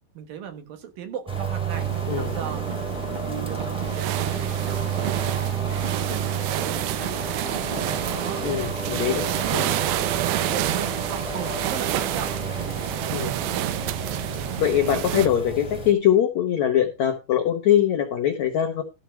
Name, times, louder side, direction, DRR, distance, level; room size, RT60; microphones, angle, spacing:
voice 1, 0.1-2.9 3.2-6.4 6.6-7.5 8.0-9.5 10.3-12.8, right 8 dB, 65° right, 7 dB, 2.6 m, -38 dB
sound 1, 1.3-15.9, right 4 dB, ahead, 2.5 m, -31 dB
sound 2, 1.7-8.7, right 4 dB, 40° right, 2.8 m, -41 dB
sound 3, 1.7-15.3, right 15 dB, 80° right, 2.7 m, -29 dB
voice 2, 2.1-2.4 8.4-9.7 13.1-13.4 14.6-18.8, left 10 dB, 90° left, 3 dB, 1.6 m, -22 dB
13.5 x 4.6 x 6.3 m, 0.27 s
omnidirectional pair, 5.0 m